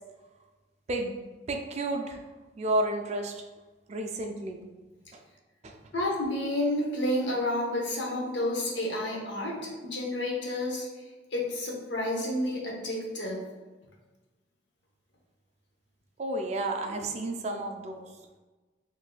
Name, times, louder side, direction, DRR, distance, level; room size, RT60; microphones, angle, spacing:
voice 1, 1.5-2.2 2.6-3.3 3.9-4.6 16.2-18.0, right 2 dB, 35° right, 4 dB, 0.3 m, -31 dB
voice 2, 5.9-11.0 11.3-13.4, left 1 dB, 70° left, -2 dB, 0.8 m, -30 dB
4.0 x 2.6 x 2.2 m, 1.2 s
head